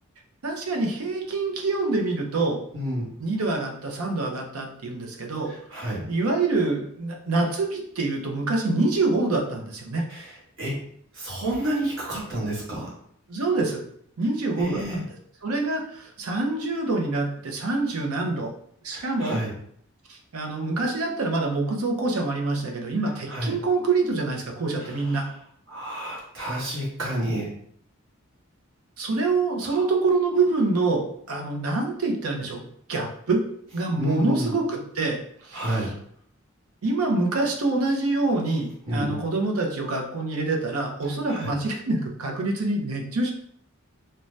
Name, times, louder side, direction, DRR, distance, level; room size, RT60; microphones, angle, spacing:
voice 1, 0.4-2.6 3.2-5.5 5.8-10.0 13.3-13.8 14.2-15.1 15.4-18.5 18.8-19.4 20.1-25.3 29.0-33.4 33.7-35.2 35.4-35.9 36.8-43.3, right 3 dB, 85° right, 2 dB, 0.6 m, -26 dB
voice 2, 2.7-3.1 5.7-6.0 10.1-10.2 10.6-10.7 11.2-12.9 14.6-15.0 18.9-19.5 23.3-23.5 25.7-27.5 29.7-29.8 34.0-34.5 35.5-35.9 38.9-39.2 41.3-41.5, right 1 dB, 55° right, -5 dB, 1.1 m, -29 dB
2.6 x 2.2 x 3.1 m, 0.66 s
head